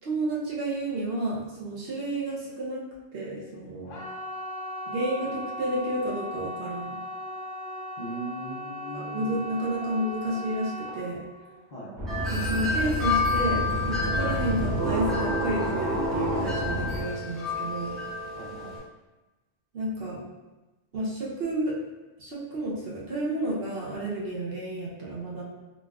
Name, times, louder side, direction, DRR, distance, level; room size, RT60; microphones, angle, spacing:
voice 1, 0.0-2.8 3.1-4.0 4.9-7.0 8.9-11.2 12.3-17.9 19.7-20.2 20.9-21.8 22.2-25.4, right 1 dB, 55° right, -5 dB, 0.8 m, -31 dB
sound 1, 3.8-14.7 15.0-15.5 15.9-16.0, left 1 dB, 80° left, 0.9 m, -38 dB
voice 2, 8.0-9.4 11.7-11.9 18.4-18.8, right 1 dB, 50° left, -8 dB, 0.6 m, -39 dB
sound 2, 12.0-17.0, right 1 dB, 20° right, 1.2 m, -29 dB
Wind chime, 12.1-18.8, left 3 dB, ahead, 0.9 m, -31 dB
4.0 x 2.4 x 2.3 m, 1.1 s
omnidirectional pair, 1.3 m